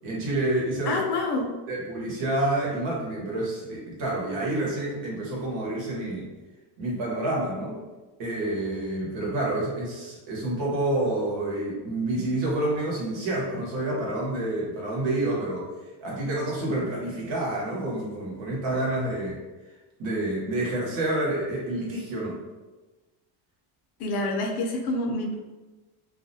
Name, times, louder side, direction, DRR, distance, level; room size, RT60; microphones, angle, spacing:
voice 1, 0.0-1.0 1.7-6.3 6.8-7.8 8.2-15.7 16.0-19.4 20.0-22.4, right 1 dB, 65° right, -4 dB, 1.1 m, -28 dB
voice 2, 0.9-1.5 24.0-25.4, left 2 dB, 55° left, 1 dB, 0.6 m, -27 dB
2.4 x 2.1 x 2.6 m, 1.2 s
supercardioid pair, 85°, 48 cm